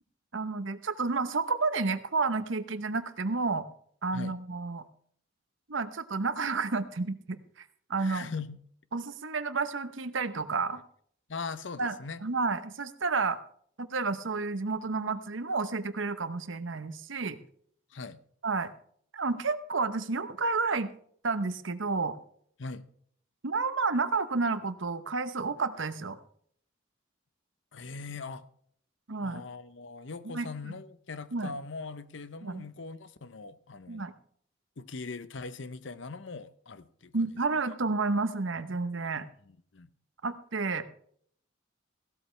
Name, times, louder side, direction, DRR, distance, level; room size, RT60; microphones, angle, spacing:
voice 1, 0.3-3.7 4.0-4.8 5.7-7.4 7.9-8.3 8.9-10.8 11.8-11.9 12.2-13.4 13.8-17.4 18.4-18.7 19.1-20.9 21.2-22.2 23.4-26.2 29.1-29.4 30.2-30.7 31.3-31.5 32.4-32.6 33.9-34.1 37.1-39.3 40.2-40.8, right 4 dB, 75° right, 0.9 m, -30 dB
voice 2, 8.0-8.6 11.3-12.2 17.9-18.2 22.6-22.9 27.7-28.4 29.2-34.0 34.8-37.2 39.7-39.9, left 4 dB, 70° left, 0.7 m, -40 dB
16.0 x 12.5 x 3.3 m
head